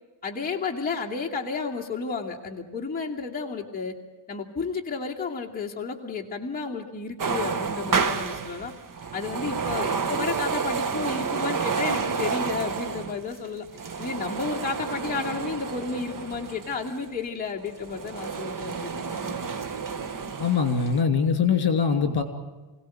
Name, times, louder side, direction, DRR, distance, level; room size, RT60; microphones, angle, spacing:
voice 1, 0.2-3.9 4.3-8.7 9.1-13.7 14.0-19.7, left 4 dB, 20° left, -3 dB, 2.6 m, -32 dB
sound 1, 7.2-17.0 17.6-21.0, right 5 dB, 45° right, 1.4 m, -30 dB
voice 2, 20.4-22.2, left 6 dB, 55° left, 8 dB, 3.1 m, -22 dB
26.5 x 17.5 x 9.2 m, 1.2 s
wide cardioid pair, 165°, 45 cm